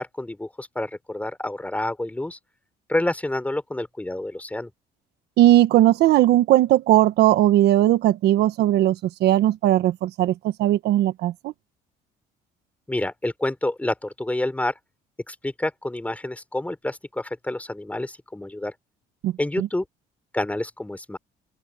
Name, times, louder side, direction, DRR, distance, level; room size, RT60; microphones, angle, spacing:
voice 1, 0.0-2.4 2.9-4.7 12.9-14.7 15.3-18.7 19.4-19.8 20.3-21.2, left 1 dB, 10° left, 4.4 m, -28 dB
voice 2, 5.4-11.5 19.2-19.7, right 14 dB, 75° right, 1.4 m, -18 dB
open air
cardioid pair, 110°, 17 cm